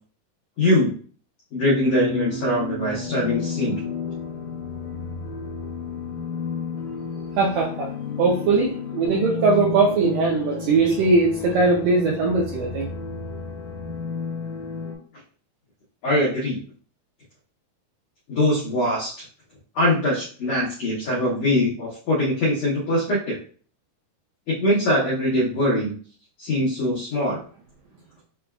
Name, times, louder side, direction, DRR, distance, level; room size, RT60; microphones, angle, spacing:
voice 1, 0.6-0.9 1.5-3.9 16.0-16.6 18.3-19.1 19.7-23.4 24.5-25.9 26.4-27.4, left 1 dB, 90° left, -5 dB, 1.4 m, -22 dB
sound 1, 1.8-15.0, left 4 dB, 70° left, 2.3 m, -32 dB
voice 2, 7.4-7.9 8.2-12.9, right 3 dB, 85° right, -1 dB, 1.9 m, -20 dB
6.2 x 2.3 x 2.2 m, 0.43 s
omnidirectional pair, 4.6 m